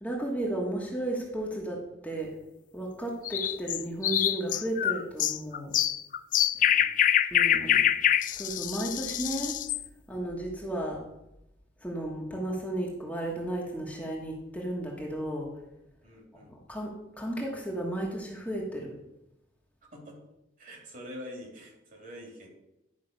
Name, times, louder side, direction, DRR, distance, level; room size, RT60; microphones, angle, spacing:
voice 1, 0.0-2.4 2.7-5.8 7.3-7.8 8.3-9.6 10.1-11.0 11.8-15.5 16.5-18.9, right 1 dB, 5° left, -2 dB, 1.3 m, -34 dB
sound 1, 3.2-9.8, left 10 dB, 40° left, 0.4 m, -25 dB
voice 2, 6.5-6.9 7.2-8.0 16.0-16.5 19.9-20.2 20.6-22.5, left 1 dB, 45° right, 1 dB, 2.7 m, -46 dB
11.0 x 5.7 x 5.3 m, 0.88 s
head